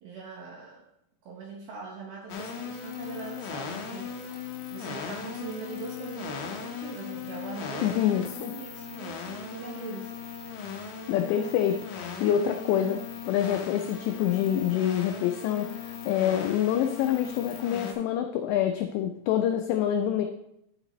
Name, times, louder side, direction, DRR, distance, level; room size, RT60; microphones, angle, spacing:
voice 1, 0.0-0.9 1.2-4.2 4.7-8.0 8.4-10.1 12.8-12.9, right 5 dB, 80° right, -1 dB, 2.1 m, -41 dB
sound 1, 2.3-17.9, left 6 dB, 70° left, 2.5 m, -38 dB
voice 2, 7.8-8.5 11.1-13.0 13.3-20.3, left 10 dB, 90° left, 5 dB, 2.4 m, -26 dB
11.0 x 6.7 x 3.0 m, 0.79 s
omnidirectional pair, 5.6 m